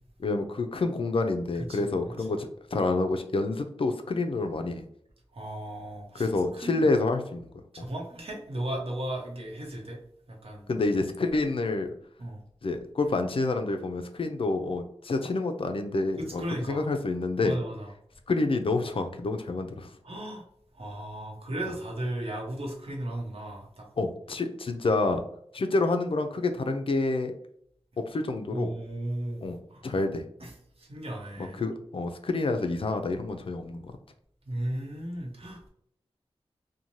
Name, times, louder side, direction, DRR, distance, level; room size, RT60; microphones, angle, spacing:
voice 1, 0.2-4.9 6.1-7.5 7.8-7.9 10.7-11.9 12.6-16.4 16.7-17.6 18.3-19.9 24.0-25.2 25.5-27.3 28.0-28.7 29.4-29.6 29.8-30.2 31.4-33.8, left 3 dB, 55° left, 6 dB, 0.4 m, -28 dB
voice 2, 5.3-6.9 7.7-10.0 10.3-10.7 12.2-12.4 16.2-16.8 17.4-17.9 20.0-20.5 20.7-23.9 28.5-29.8 30.4-30.5 30.8-31.6 34.5-35.7, right 1 dB, 60° right, -1 dB, 0.9 m, -35 dB
2.6 x 2.1 x 3.0 m, 0.69 s
wide cardioid pair, 80°, 11 cm